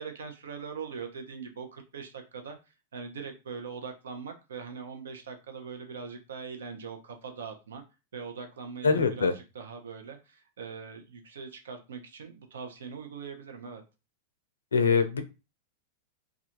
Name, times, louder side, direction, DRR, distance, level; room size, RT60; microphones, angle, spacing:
voice 1, 0.0-2.6 2.9-7.8 8.1-13.8, right 5 dB, 80° right, 5 dB, 0.6 m, -41 dB
voice 2, 8.8-9.3 14.7-15.2, left 5 dB, 90° left, 8 dB, 0.4 m, -23 dB
2.4 x 2.3 x 2.8 m, 0.29 s
hypercardioid pair, 105°, 0 cm